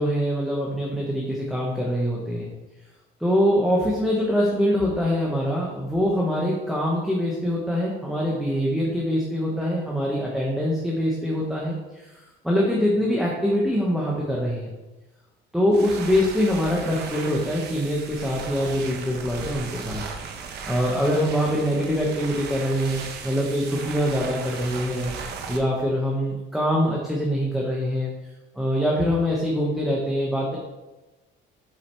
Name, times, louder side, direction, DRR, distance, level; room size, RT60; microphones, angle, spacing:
voice 1, 0.0-2.5 3.2-12.1 12.4-14.7 15.5-20.0 20.7-25.1 25.5-28.1 28.6-30.6, equal, ahead, -4 dB, 1.1 m, -24 dB
sound 1, 15.7-25.6, right 5 dB, 60° right, 1.1 m, -37 dB
7.6 x 4.9 x 4.6 m, 1.1 s
cardioid pair, 150°, 19 cm